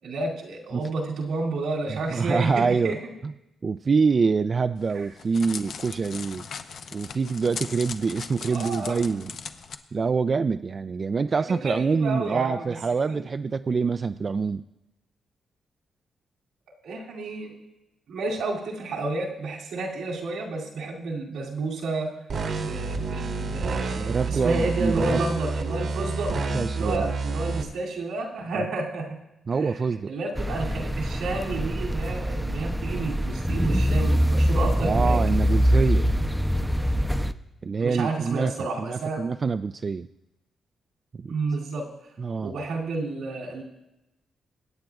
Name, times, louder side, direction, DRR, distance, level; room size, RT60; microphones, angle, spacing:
voice 1, 0.0-3.0 8.5-9.0 11.5-12.8 13.1-13.2 16.8-17.5 18.1-22.1 22.6-26.3 26.8-29.2 29.5-29.8 30.1-35.2 37.8-39.2 41.3-41.9 42.4-43.6, right 3 dB, 85° right, -3 dB, 2.7 m, -30 dB
voice 2, 1.9-3.0 3.2-3.3 3.6-6.5 6.9-9.3 9.9-14.6 24.0-25.2 26.5-27.1 29.5-30.1 34.8-36.1 37.6-38.5 38.8-40.1 41.1-41.4 42.2-42.5, right 5 dB, 50° right, 10 dB, 0.3 m, -25 dB
Crackle, 4.8-9.8, left 6 dB, 70° left, 0.7 m, -39 dB
sound 1, 22.3-27.6, right 3 dB, 65° right, 1.4 m, -29 dB
sound 2, 30.4-37.3, equal, ahead, 0.6 m, -24 dB
24.0 x 8.7 x 2.4 m, 0.94 s
supercardioid pair, 60°, 0 cm